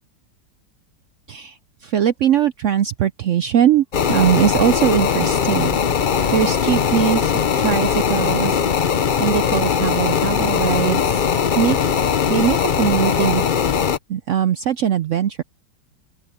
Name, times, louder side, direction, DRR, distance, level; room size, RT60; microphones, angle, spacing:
voice 1, 1.3-5.8 6.3-11.3 11.5-11.8 12.3-13.8 14.1-15.4, right 10 dB, 75° right, 0.7 m, -21 dB
sound 1, 3.9-14.0, left 7 dB, 55° left, 0.5 m, -20 dB
open air
omnidirectional pair, 1.9 m